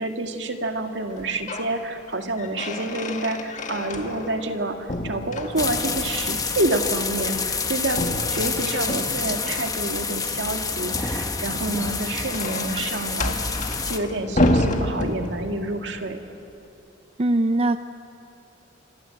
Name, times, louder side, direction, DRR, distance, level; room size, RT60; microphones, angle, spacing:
voice 1, 0.0-13.4 13.9-16.2, right 2 dB, 70° right, 5 dB, 2.2 m, -28 dB
sound 1, 1.1-1.8 2.1-4.6 4.9-6.1 7.9-9.5 11.5-15.7, left 1 dB, 45° left, 1.9 m, -28 dB
sound 2, 5.6-14.0, left 4 dB, 20° left, 1.3 m, -28 dB
voice 2, 17.2-17.8, right 2 dB, 35° right, 10 dB, 0.5 m, -20 dB
27.0 x 26.0 x 7.8 m, 2.8 s
head